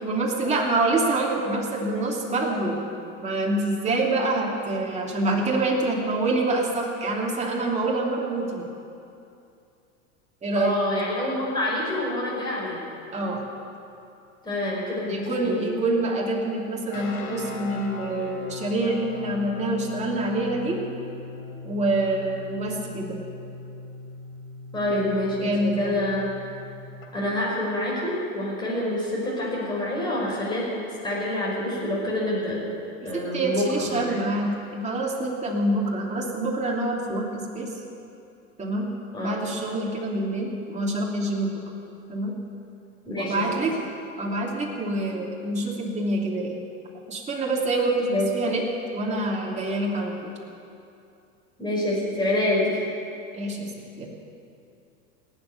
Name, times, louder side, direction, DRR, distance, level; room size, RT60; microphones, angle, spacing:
voice 1, 0.0-2.8 3.2-8.6 10.4-10.8 13.1-13.4 15.0-20.8 21.6-23.2 24.9-25.0 25.4-26.0 33.0-37.7 38.6-38.9 39.2-41.6 42.1-42.3 43.2-43.7 44.2-46.6 47.1-48.6 48.9-50.3 53.3-53.7 54.0-54.1, right 2 dB, 15° right, -2 dB, 2.9 m, -26 dB
voice 2, 10.5-12.8 14.4-15.6 24.7-26.3 27.1-30.7 31.0-32.7 33.0-34.1 39.1-39.4 43.0-43.4 48.1-48.3 51.6-52.7, left 1 dB, 10° left, -6 dB, 5.1 m, -27 dB
sound 1, 16.9-27.1, left 3 dB, 80° left, 3.4 m, -39 dB
19.0 x 7.6 x 9.4 m, 2.6 s
hypercardioid pair, 120°, 40 cm